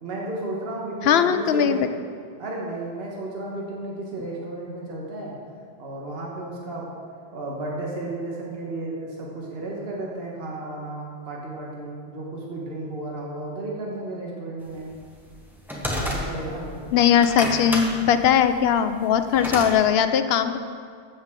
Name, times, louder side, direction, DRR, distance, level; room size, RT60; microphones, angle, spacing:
voice 1, 0.0-1.8 2.4-5.4 5.8-6.9 7.3-14.9 15.9-16.9, right 2 dB, 60° right, -3 dB, 1.6 m, -33 dB
voice 2, 1.0-1.8 16.9-20.6, left 8 dB, 65° left, 10 dB, 0.8 m, -19 dB
sound 1, 14.9-16.6 17.1-19.7, equal, ahead, 1.2 m, -30 dB
13.5 x 7.5 x 3.7 m, 2.1 s
omnidirectional pair, 1.2 m